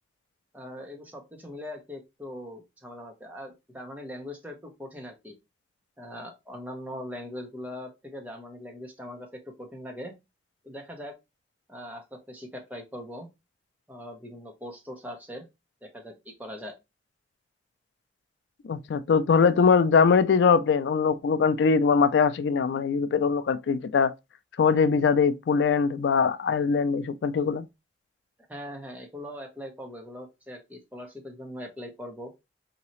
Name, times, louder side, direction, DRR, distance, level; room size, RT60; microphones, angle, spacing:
voice 1, 0.5-5.3 6.0-10.1 10.6-11.1 11.7-13.3 13.9-15.4 15.8-16.7 28.5-32.3, left 1 dB, 10° right, 0.9 m, -41 dB
voice 2, 18.6-24.1 24.6-27.6, left 5 dB, 75° left, 0.3 m, -22 dB
3.8 x 2.8 x 3.0 m
head